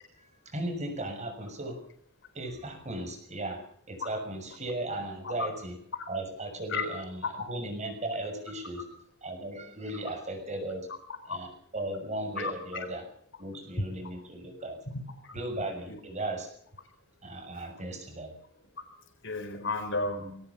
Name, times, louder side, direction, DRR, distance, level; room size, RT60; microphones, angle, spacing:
voice 1, 0.2-1.8 2.3-5.7 6.1-7.2 7.5-8.8 9.2-10.9 11.3-11.5 11.7-13.0 13.4-14.8 15.3-16.5 17.2-18.3, right 1 dB, 35° right, 5 dB, 6.5 m, -36 dB
voice 2, 12.4-12.8 13.8-13.9 15.2-15.3 15.9-16.0 17.6-17.7 18.8-18.9 19.2-20.4, left 3 dB, 60° left, 8 dB, 4.2 m, -33 dB
21.5 x 18.5 x 7.2 m, 0.64 s
head